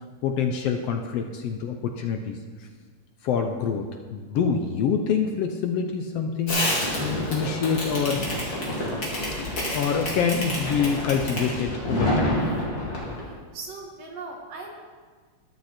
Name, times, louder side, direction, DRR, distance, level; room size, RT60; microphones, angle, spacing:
voice 1, 0.0-2.7 3.2-8.2 9.4-12.5, left 6 dB, 70° left, 5 dB, 1.6 m, -26 dB
Fireworks, 6.5-13.3, left 1 dB, 35° left, 2.7 m, -28 dB
voice 2, 13.5-14.8, right 3 dB, 60° right, 0 dB, 2.6 m, -38 dB
13.0 x 11.0 x 4.4 m, 1.5 s
omnidirectional pair, 3.3 m